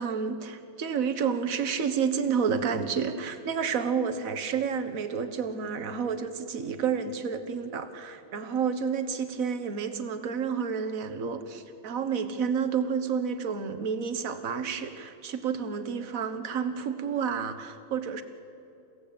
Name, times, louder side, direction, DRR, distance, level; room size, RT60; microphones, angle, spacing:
voice 1, 0.0-18.2, right 6 dB, 45° right, 9 dB, 1.5 m, -30 dB
28.5 x 16.5 x 8.7 m, 2.7 s
omnidirectional pair, 2.3 m